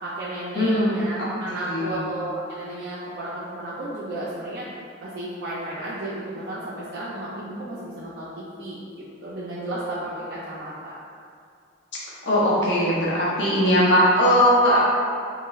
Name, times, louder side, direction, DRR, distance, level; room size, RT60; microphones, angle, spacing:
voice 1, 0.0-4.7 5.0-11.0, right 1 dB, 55° right, -8 dB, 0.4 m, -33 dB
voice 2, 0.5-0.9 1.2-2.0 12.2-14.8, equal, 65° left, -6 dB, 0.7 m, -20 dB
2.5 x 2.3 x 3.0 m, 2.3 s
head